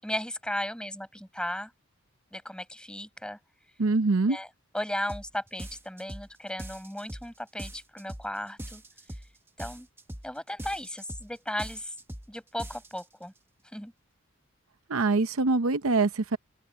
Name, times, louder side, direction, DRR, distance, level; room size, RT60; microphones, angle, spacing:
voice 1, 0.0-1.7 2.3-3.4 4.3-4.5 4.7-8.8 9.6-9.9 10.2-11.9 12.3-13.3 13.7-13.9, left 1 dB, 5° left, 7.4 m, -35 dB
voice 2, 3.8-4.4 14.9-16.4, right 3 dB, 75° right, 0.8 m, -24 dB
sound 1, 5.1-5.3 5.6-6.3 6.6-7.3 7.6-8.3 8.6-9.3 9.6-10.3 10.6-11.3 11.6-12.3 12.6-13.0, right 1 dB, 10° right, 1.2 m, -41 dB
open air
head